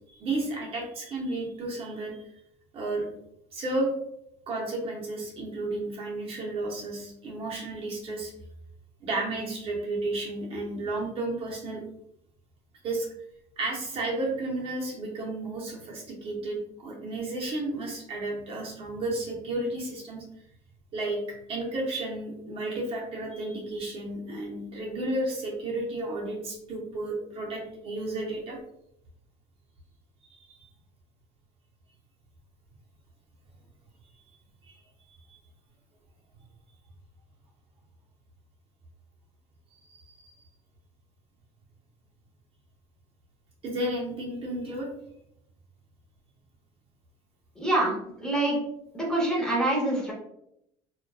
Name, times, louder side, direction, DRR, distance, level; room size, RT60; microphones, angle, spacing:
voice 1, 0.1-2.3 2.7-3.1 3.5-3.9 4.5-8.3 9.0-11.8 12.8-13.1 13.6-20.2 20.9-21.2 21.5-28.6 30.3-30.4 34.6-34.8 35.3-35.4 39.9-40.3 43.6-44.9, right 2 dB, 40° right, -1 dB, 0.7 m, -32 dB
voice 2, 47.5-48.6 48.9-50.1, right 1 dB, 5° left, -4 dB, 0.7 m, -26 dB
2.5 x 2.2 x 2.2 m, 0.76 s
cardioid pair, 140°, 14 cm